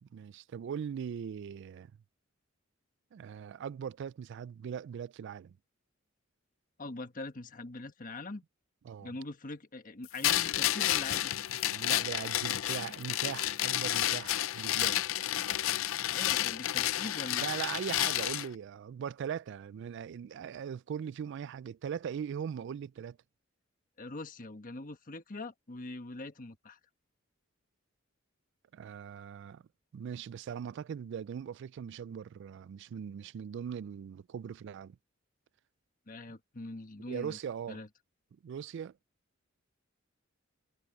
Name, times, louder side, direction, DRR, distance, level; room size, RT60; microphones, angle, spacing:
voice 1, 0.0-1.9 3.1-5.6 8.9-9.1 11.7-15.0 17.4-23.2 28.7-29.6 29.9-35.0 37.1-37.8 38.4-38.9, right 8 dB, 60° right, 0.3 m, -40 dB
voice 2, 6.8-8.4 9.0-11.3 16.1-17.5 24.0-26.8 36.1-37.4 37.7-37.9, left 2 dB, 40° left, 1.4 m, -43 dB
sound 1, 10.2-18.5, left 13 dB, 75° left, 0.5 m, -31 dB
head